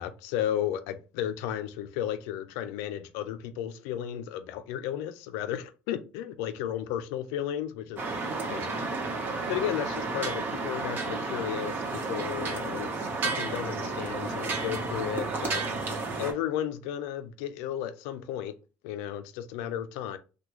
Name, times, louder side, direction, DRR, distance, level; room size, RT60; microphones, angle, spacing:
voice 1, 0.0-8.1 8.5-8.7 9.5-12.9 13.2-15.9 16.2-18.5 18.8-20.2, left 10 dB, 90° left, 0.3 m, -34 dB
sound 1, 8.0-16.3, right 3 dB, 45° right, 0.9 m, -32 dB
3.0 x 2.2 x 3.5 m
supercardioid pair, 90°, 5 cm